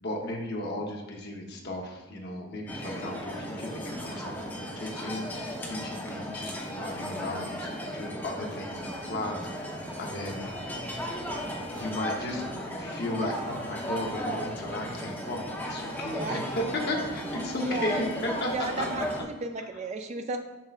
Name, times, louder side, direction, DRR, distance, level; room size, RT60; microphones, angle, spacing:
voice 1, 0.0-10.4 11.7-12.4 12.7-19.1, left 1 dB, 45° left, 0 dB, 0.9 m, -35 dB
sound 1, 2.7-19.2, equal, 10° left, 0.6 m, -36 dB
voice 2, 13.1-13.5 16.1-16.4 17.6-18.0 18.5-20.4, right 3 dB, 30° right, 5 dB, 0.3 m, -34 dB
7.2 x 5.4 x 2.4 m, 1.1 s
head